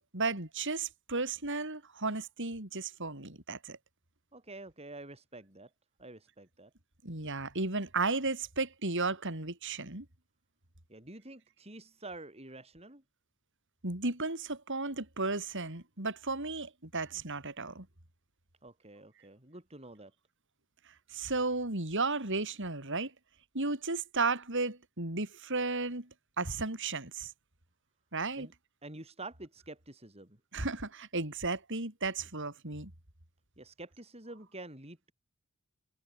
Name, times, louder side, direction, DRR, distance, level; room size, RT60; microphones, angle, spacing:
voice 1, 0.0-3.8 7.0-10.1 13.8-17.9 21.1-23.1 23.5-26.1 26.4-27.3 28.1-28.5 30.5-32.9, right 3 dB, 55° right, 4.6 m, -34 dB
voice 2, 4.3-5.7 6.0-6.7 10.9-13.0 18.6-20.1 28.4-28.5 28.8-30.4 33.6-35.1, right 2 dB, 30° right, 6.7 m, -48 dB
head